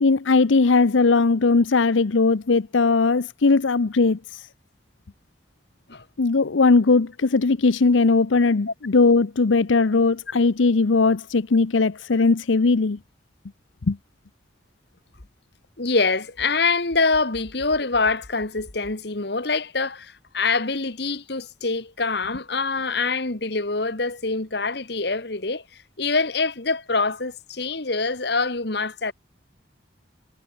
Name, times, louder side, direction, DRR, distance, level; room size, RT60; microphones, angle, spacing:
voice 1, 0.0-4.5 6.2-13.0 13.9-14.0, left 3 dB, 80° left, 0.7 m, -19 dB
voice 2, 15.8-25.6 26.0-29.1, left 3 dB, 55° left, 1.7 m, -25 dB
head